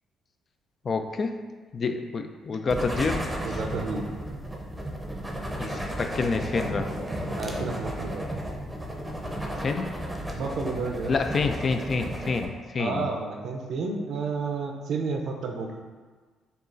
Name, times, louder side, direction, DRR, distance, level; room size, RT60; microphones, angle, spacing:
voice 1, 0.8-1.4 1.7-3.6 5.6-6.9 9.6-9.9 11.1-13.1, left 4 dB, 45° left, 6 dB, 0.3 m, -28 dB
sound 1, 2.7-12.5, equal, 5° right, 0.7 m, -33 dB
voice 2, 3.4-4.1 7.4-8.3 10.3-11.1 12.8-15.7, right 4 dB, 75° right, 2 dB, 0.5 m, -31 dB
6.6 x 2.4 x 2.5 m, 1.4 s
cardioid pair, 90°, 0 cm